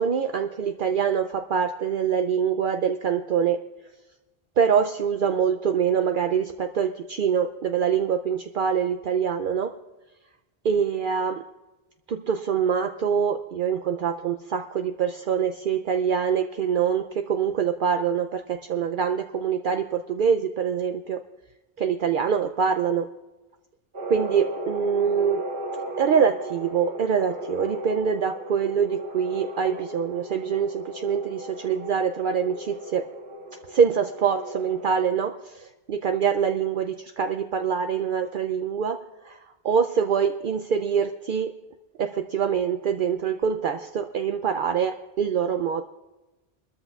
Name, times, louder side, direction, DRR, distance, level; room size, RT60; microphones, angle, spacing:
voice 1, 0.0-3.6 4.6-9.7 10.6-11.4 12.1-21.2 21.8-23.1 24.1-25.4 26.0-33.0 33.7-41.5 42.0-45.8, right 7 dB, 60° right, 6 dB, 0.7 m, -25 dB
sound 1, 23.9-35.1, right 1 dB, 80° right, 2.5 m, -36 dB
22.0 x 13.5 x 2.4 m, 1.1 s
omnidirectional pair, 1.1 m